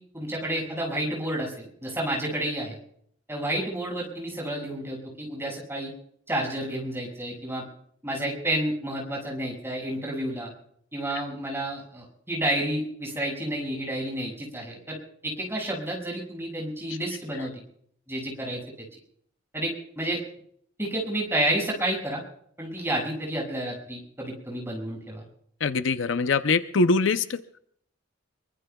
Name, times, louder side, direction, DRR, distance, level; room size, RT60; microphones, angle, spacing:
voice 1, 0.0-2.8 3.3-5.9 6.3-7.6 8.0-10.5 10.9-15.0 15.2-17.6 18.1-18.8 19.5-20.2 20.8-22.2 22.6-25.2, right 1 dB, 10° right, -1 dB, 6.1 m, -30 dB
voice 2, 25.6-27.4, left 4 dB, 70° left, 11 dB, 0.6 m, -23 dB
24.5 x 23.5 x 2.3 m, 0.65 s
head